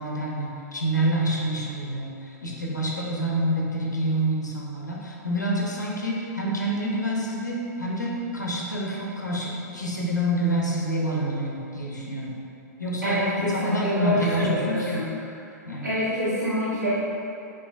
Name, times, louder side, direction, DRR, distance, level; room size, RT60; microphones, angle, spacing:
voice 1, 0.0-12.3 12.8-15.0 15.6-15.9, right 1 dB, 85° left, -3 dB, 0.6 m, -27 dB
voice 2, 13.0-15.0 15.8-16.9, equal, 85° right, -12 dB, 1.1 m, -26 dB
4.8 x 2.6 x 2.5 m, 2.8 s
figure-of-eight pair, 105°, 9 cm